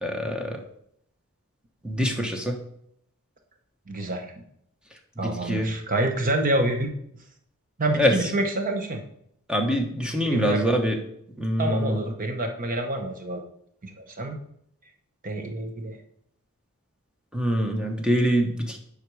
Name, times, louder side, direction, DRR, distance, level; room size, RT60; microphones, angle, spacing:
voice 1, 0.0-0.6 1.8-2.6 5.2-5.7 8.0-8.1 9.5-11.0 11.4-12.0 17.3-18.8, equal, 5° right, 3 dB, 0.9 m, -24 dB
voice 2, 3.9-4.4 5.2-6.9 7.8-9.0 10.2-10.6 11.6-13.4 13.8-14.4 15.2-16.0, right 1 dB, 40° right, 4 dB, 0.9 m, -27 dB
7.9 x 5.2 x 4.7 m, 0.72 s
head